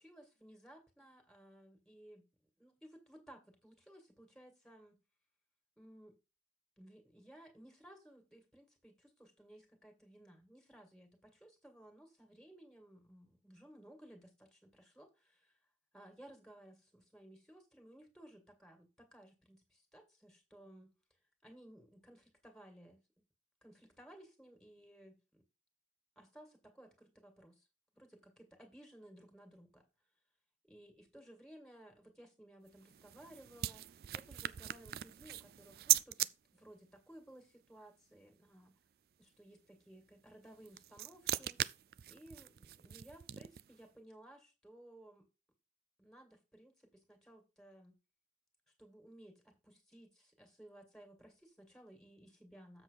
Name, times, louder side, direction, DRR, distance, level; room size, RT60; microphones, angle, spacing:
voice 1, 0.0-2.2 2.6-5.0 5.8-6.1 6.8-15.6 15.9-20.9 21.4-23.0 23.6-25.4 26.2-27.7 27.9-29.8 30.7-38.7 39.2-41.6 42.1-45.2 46.0-47.9 48.8-52.8, right 1 dB, 5° left, 2.0 m, -58 dB
sound 1, 32.7-36.3 40.4-43.8, right 13 dB, 60° right, 0.3 m, -38 dB
7.4 x 6.5 x 4.0 m
head